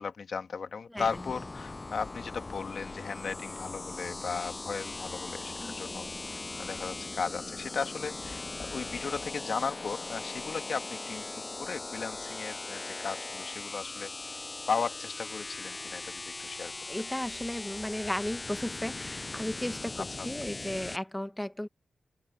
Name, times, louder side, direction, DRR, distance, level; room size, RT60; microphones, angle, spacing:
voice 1, 0.0-16.7 20.0-20.3, left 5 dB, 65° left, 1.8 m, -36 dB
sound 1, 1.0-21.0, left 3 dB, 35° left, 0.3 m, -40 dB
voice 2, 5.6-6.1 16.9-21.7, left 1 dB, 10° left, 1.5 m, -35 dB
open air
supercardioid pair, 45°, 0 cm